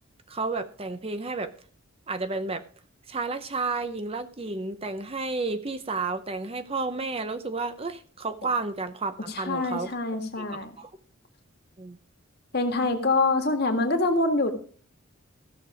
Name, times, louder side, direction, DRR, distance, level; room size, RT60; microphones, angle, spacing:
voice 1, 0.3-1.5 2.1-2.6 3.1-9.9 10.4-10.5 10.8-10.9 11.8-12.0, right 3 dB, 30° right, 10 dB, 0.7 m, -31 dB
voice 2, 9.3-10.7 12.5-14.5, left 2 dB, 50° left, 5 dB, 1.8 m, -25 dB
15.5 x 6.7 x 4.9 m, 0.43 s
head